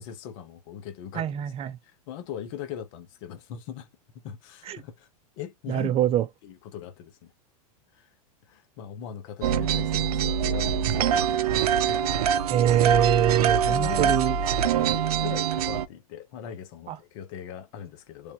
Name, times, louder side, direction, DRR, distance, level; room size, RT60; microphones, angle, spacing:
voice 1, 0.0-3.9 4.2-5.1 5.4-6.0 6.4-7.3 7.9-8.1 8.5-12.3 13.7-18.3, left 9 dB, 60° left, 1.1 m, -40 dB
voice 2, 1.1-1.8 4.7-4.8 5.7-6.2 12.5-14.4 16.9-17.0, right 11 dB, 30° right, 0.6 m, -24 dB
sound 1, 9.4-15.9, right 8 dB, 80° right, 0.5 m, -24 dB
3.5 x 2.7 x 2.9 m
hypercardioid pair, 110°, 19 cm